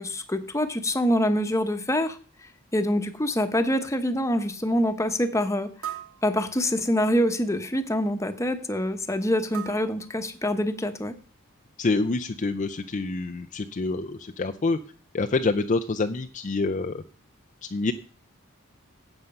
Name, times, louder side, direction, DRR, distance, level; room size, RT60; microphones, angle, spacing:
voice 1, 0.0-2.2 2.7-5.7 6.2-11.1, equal, 15° left, 9 dB, 1.0 m, -25 dB
sound 1, 2.5-2.6 3.2-3.3 3.9-4.0 5.8-7.0 9.5-10.8, right 11 dB, 85° right, 1.3 m, -41 dB
voice 2, 11.8-14.8 15.1-17.0 17.6-17.9, left 3 dB, 35° left, 6 dB, 0.5 m, -27 dB
11.5 x 8.0 x 5.4 m, 0.41 s
head